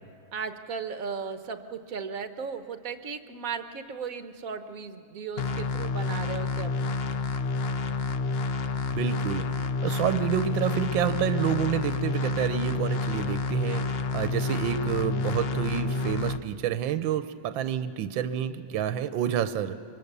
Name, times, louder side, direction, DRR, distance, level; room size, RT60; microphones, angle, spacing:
voice 1, 0.3-7.0, right 6 dB, 50° right, 8 dB, 1.3 m, -36 dB
sound 1, 5.4-16.4, left 3 dB, 85° left, 0.5 m, -29 dB
voice 2, 8.9-19.8, right 9 dB, 80° right, 10 dB, 1.5 m, -29 dB
24.5 x 23.5 x 6.8 m, 2.5 s
omnidirectional pair, 2.1 m